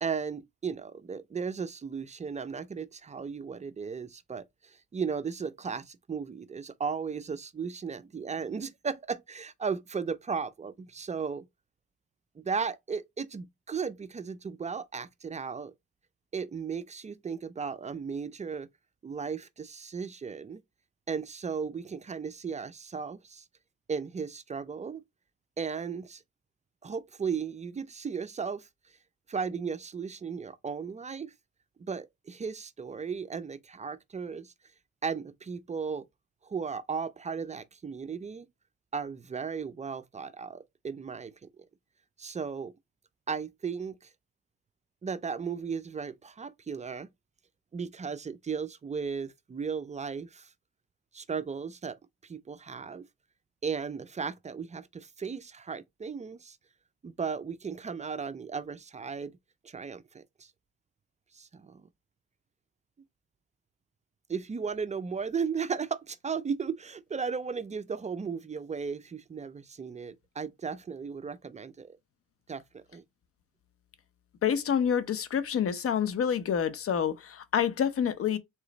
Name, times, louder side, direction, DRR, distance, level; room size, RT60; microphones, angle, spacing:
voice 1, 0.0-11.5 12.4-15.7 16.3-18.7 19.0-20.6 21.1-23.4 23.9-25.0 25.6-26.2 26.8-28.7 29.3-31.3 31.8-34.5 35.0-36.1 36.4-38.5 38.9-41.3 42.2-42.7 43.3-44.1 45.0-47.1 47.7-50.5 51.1-52.0 52.2-53.0 53.6-56.6 57.0-59.4 59.6-60.5 61.3-61.9 64.3-72.0 72.5-73.0, right 6 dB, 25° right, 0.4 m, -35 dB
voice 2, 74.4-78.4, left 8 dB, 50° left, 0.8 m, -27 dB
3.9 x 3.0 x 3.9 m
cardioid pair, 90°, 30 cm